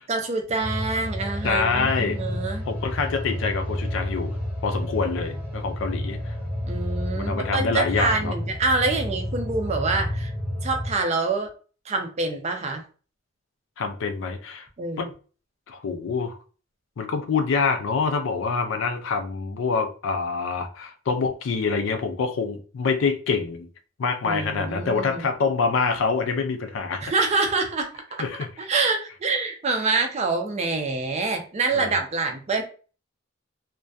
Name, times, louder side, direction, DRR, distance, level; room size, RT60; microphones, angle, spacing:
voice 1, 0.1-2.6 6.6-10.3 10.6-11.5 11.9-12.8 14.8-15.1 24.2-25.3 27.0-28.2 28.6-32.6, right 3 dB, 35° right, 0.4 m, -26 dB
sound 1, 0.6-10.9, left 1 dB, 10° right, 0.7 m, -30 dB
voice 2, 1.4-2.2 2.7-4.3 4.6-6.2 7.2-8.4 13.8-14.7 15.0-15.1 15.7-16.4 17.0-23.7 24.0-27.3 28.2-28.5 31.7-31.9, left 4 dB, 70° left, 0.4 m, -26 dB
2.2 x 2.1 x 2.5 m
head